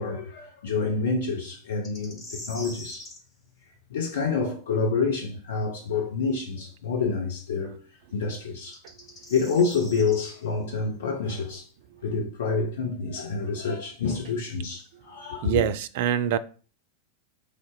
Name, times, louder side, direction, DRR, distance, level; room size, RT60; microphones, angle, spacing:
voice 1, 0.0-3.0 3.9-7.8 8.1-8.8 9.3-11.7 12.0-15.5, left 4 dB, 60° left, 0.8 m, -28 dB
sound 1, 1.8-3.2 6.4-6.5 8.6-10.3, left 1 dB, 25° left, 1.5 m, -43 dB
voice 2, 15.4-16.4, right 10 dB, 50° right, 0.3 m, -24 dB
3.8 x 3.4 x 3.9 m
figure-of-eight pair, 90°, 0 cm